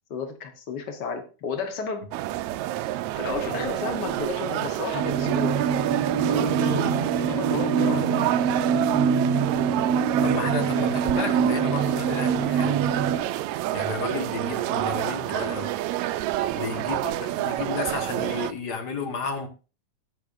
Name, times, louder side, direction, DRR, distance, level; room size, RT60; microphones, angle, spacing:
voice 1, 0.1-2.1 3.2-5.6 6.1-8.2 16.4-17.2, left 5 dB, 85° left, 6 dB, 0.9 m, -33 dB
sound 1, 2.1-18.5, right 14 dB, 80° right, 1.6 m, -28 dB
sound 2, 4.9-13.2, right 6 dB, 60° right, 1.9 m, -24 dB
voice 2, 10.2-12.8 13.7-15.7 16.5-19.5, left 5 dB, 45° left, 5 dB, 1.3 m, -33 dB
19.5 x 6.7 x 2.6 m, 0.34 s
omnidirectional pair, 3.8 m